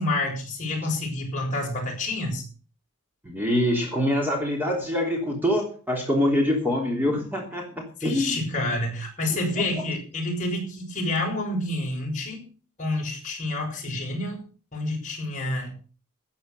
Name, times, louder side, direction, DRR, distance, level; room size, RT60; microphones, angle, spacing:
voice 1, 0.0-2.4 8.0-12.4 12.8-14.4 14.7-15.7, left 2 dB, 35° left, -1 dB, 6.5 m, -28 dB
voice 2, 3.2-8.4 9.3-9.8, left 1 dB, 10° right, 0 dB, 3.3 m, -25 dB
13.5 x 9.6 x 6.8 m, 0.38 s
head